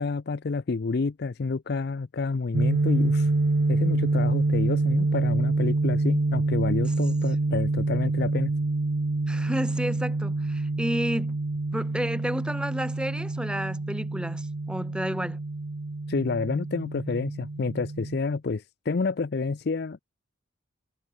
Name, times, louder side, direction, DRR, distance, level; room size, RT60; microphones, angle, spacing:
voice 1, 0.0-3.3 3.7-8.5 16.1-20.0, left 4 dB, 50° left, 0.5 m, -29 dB
sound 1, 2.5-18.2, right 2 dB, 60° right, 0.8 m, -26 dB
voice 2, 9.3-11.4 11.7-15.4, equal, 5° right, 3.0 m, -31 dB
head